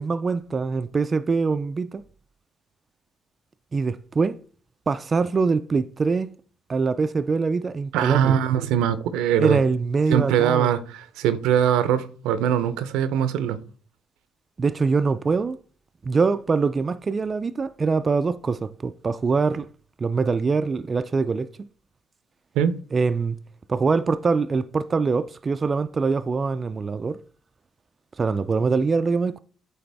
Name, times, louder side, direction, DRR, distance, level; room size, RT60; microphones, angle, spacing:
voice 1, 0.0-2.0 3.7-4.4 4.9-6.3 6.7-8.4 9.4-10.7 14.6-15.6 16.0-19.7 20.0-21.7 22.9-23.4 23.7-27.2 28.2-29.4, right 4 dB, 35° right, 0.3 m, -23 dB
voice 2, 7.9-9.6 10.1-13.6 22.6-22.7, right 9 dB, 85° right, 0.6 m, -22 dB
8.7 x 3.4 x 3.4 m
supercardioid pair, 80°, 0 cm